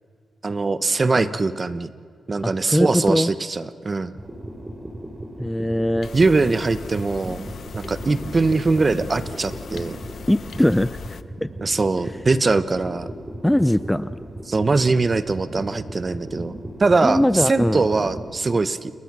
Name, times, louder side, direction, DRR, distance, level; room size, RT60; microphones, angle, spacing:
voice 1, 0.4-1.9 2.3-4.2 6.1-7.5 7.7-10.0 11.6-13.1 14.5-16.5 16.8-18.9, right 3 dB, 35° right, 14 dB, 1.0 m, -22 dB
voice 2, 2.4-3.3 5.4-6.1 10.3-10.9 11.4-11.5 13.4-14.1 17.0-17.8, left 1 dB, 5° left, 15 dB, 0.5 m, -20 dB
sound 1, 4.2-18.3, right 1 dB, 20° right, 3.5 m, -36 dB
sound 2, 6.0-11.2, left 7 dB, 65° left, 0.8 m, -39 dB
29.0 x 20.5 x 6.2 m, 2.2 s
cardioid pair, 90°, 0 cm